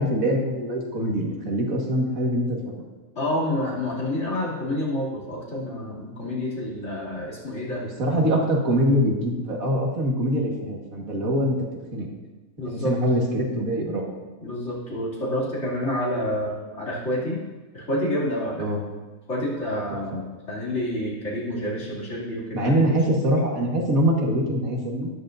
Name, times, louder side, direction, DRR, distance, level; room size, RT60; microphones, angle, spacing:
voice 1, 0.0-2.8 7.8-11.6 11.9-12.1 12.7-14.1 18.6-18.8 19.9-20.0 22.5-25.1, equal, 75° right, -1 dB, 2.1 m, -23 dB
voice 2, 3.1-7.8 12.6-13.0 14.4-17.4 17.7-18.7 19.3-23.0, left 1 dB, 55° left, -6 dB, 3.2 m, -28 dB
12.5 x 10.5 x 2.6 m, 1.2 s
omnidirectional pair, 1.5 m